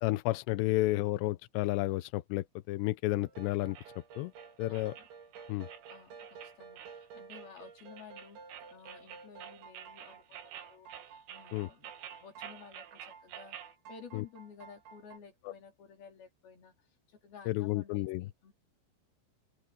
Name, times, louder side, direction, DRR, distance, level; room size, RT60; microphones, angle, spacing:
voice 1, 0.0-3.8 4.2-4.3 4.6-5.0 5.5-5.7 11.5-11.7 14.1-14.2 17.5-18.2, left 18 dB, 80° left, 2.6 m, -31 dB
sound 1, 3.2-15.2, right 5 dB, 70° right, 5.9 m, -53 dB
sound 2, 3.8-13.8, right 10 dB, 85° right, 5.1 m, -50 dB
voice 2, 4.7-5.1 5.9-8.4 8.7-11.9 12.2-13.6 13.9-16.8 17.1-18.5, left 6 dB, 55° left, 5.8 m, -53 dB
open air
omnidirectional pair, 5.5 m